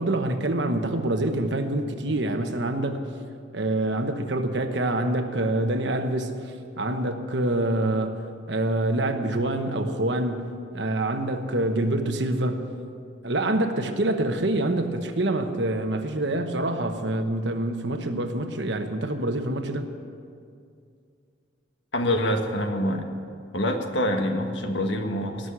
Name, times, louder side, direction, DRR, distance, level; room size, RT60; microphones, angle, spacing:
voice 1, 0.0-3.0 3.5-6.3 6.8-10.5 10.7-12.7 13.2-19.9, right 1 dB, 70° right, 6 dB, 1.2 m, -26 dB
voice 2, 21.9-23.0 23.5-25.5, left 1 dB, 80° left, 5 dB, 1.5 m, -25 dB
18.5 x 6.4 x 9.9 m, 2.4 s
head